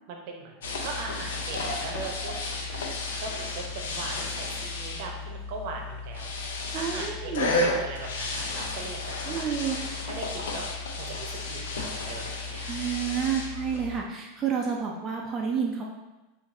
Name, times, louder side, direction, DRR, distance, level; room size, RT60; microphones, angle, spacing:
voice 1, 0.1-0.5 0.8-2.9 3.1-6.3 6.7-7.3 7.6-9.5 10.0-12.8, right 4 dB, 60° right, 2 dB, 0.8 m, -40 dB
sound 1, 0.6-14.0, left 2 dB, 85° left, 0.7 m, -33 dB
voice 2, 6.7-7.5 9.3-9.8 12.7-15.8, right 7 dB, 30° right, -1 dB, 0.5 m, -29 dB
6.0 x 2.6 x 2.6 m, 1.1 s
hypercardioid pair, 115°, 0 cm